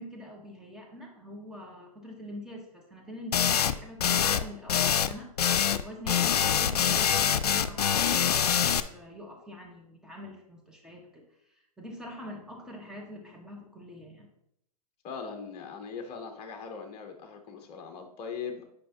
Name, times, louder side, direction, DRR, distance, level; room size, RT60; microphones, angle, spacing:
voice 1, 0.0-5.3 5.7-11.2 11.5-14.3, equal, 5° right, -1 dB, 1.3 m, -44 dB
sound 1, 3.3-3.7 4.0-4.4 4.7-5.8 6.1-8.8, left 8 dB, 80° left, 0.4 m, -24 dB
voice 2, 15.0-18.6, left 6 dB, 30° left, 5 dB, 0.9 m, -40 dB
8.3 x 5.1 x 2.9 m, 0.77 s
hypercardioid pair, 115°, 20 cm